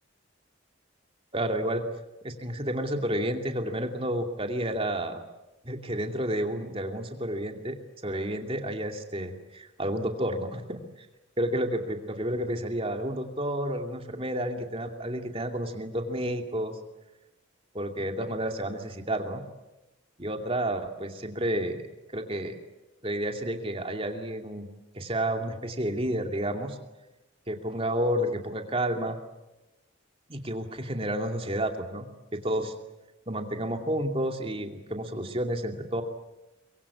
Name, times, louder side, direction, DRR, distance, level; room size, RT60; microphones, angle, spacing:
voice 1, 1.3-1.8 2.2-5.2 5.6-7.8 8.0-11.1 11.4-16.8 17.7-19.4 20.2-21.8 22.1-22.6 23.0-24.7 24.9-26.8 27.5-29.2 30.3-32.1 32.4-32.7 33.3-36.0, right 1 dB, 30° right, 4 dB, 2.6 m, -30 dB
24.5 x 22.5 x 8.6 m, 1.0 s
head